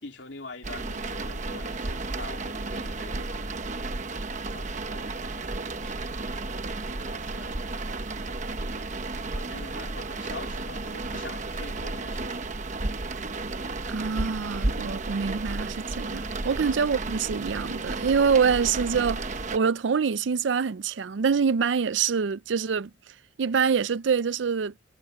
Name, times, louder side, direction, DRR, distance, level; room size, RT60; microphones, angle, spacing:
voice 1, 0.0-3.6 4.4-7.7 9.3-12.4 16.6-16.8, left 3 dB, 75° left, 3.5 m, -45 dB
sound 1, 0.6-19.6, right 2 dB, 40° right, 1.0 m, -33 dB
voice 2, 13.9-19.2 19.5-22.9 23.4-24.7, right 6 dB, 75° right, 0.5 m, -25 dB
head